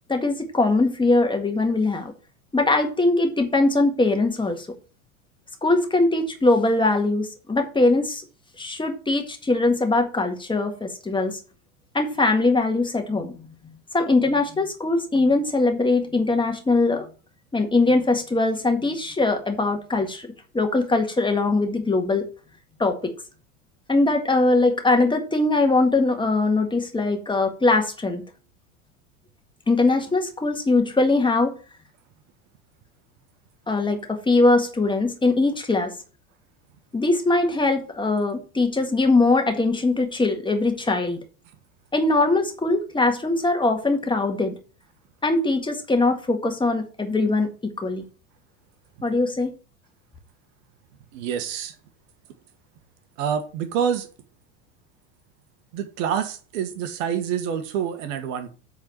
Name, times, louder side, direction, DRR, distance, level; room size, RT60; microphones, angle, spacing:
voice 1, 0.1-2.1 2.5-4.7 5.6-8.2 8.6-11.4 11.9-13.5 13.9-17.1 17.5-20.3 20.5-22.3 22.8-23.1 23.9-28.2 29.7-31.5 33.7-35.9 36.9-41.2 41.9-44.5 45.2-48.0 49.0-49.5, left 2 dB, 10° left, 1.7 m, -21 dB
voice 2, 51.1-51.7 53.2-54.1 55.7-58.5, right 8 dB, 65° right, 1.5 m, -27 dB
8.3 x 4.1 x 6.2 m
hypercardioid pair, 105°, 41 cm